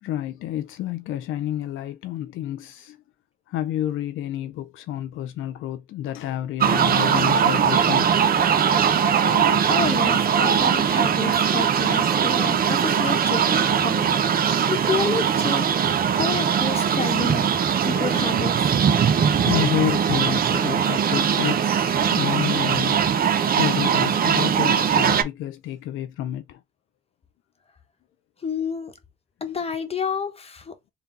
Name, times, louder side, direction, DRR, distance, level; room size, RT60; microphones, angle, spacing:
voice 1, 0.0-3.0 3.5-8.5 19.1-26.6, left 12 dB, 80° left, 0.5 m, -30 dB
sound 1, 6.6-25.2, right 7 dB, 50° right, 0.7 m, -20 dB
voice 2, 9.2-14.2 14.7-15.7 16.1-17.5 17.8-18.7 28.4-28.9 29.4-30.7, left 5 dB, 30° left, 1.0 m, -29 dB
4.0 x 2.3 x 3.9 m
cardioid pair, 90°, 20 cm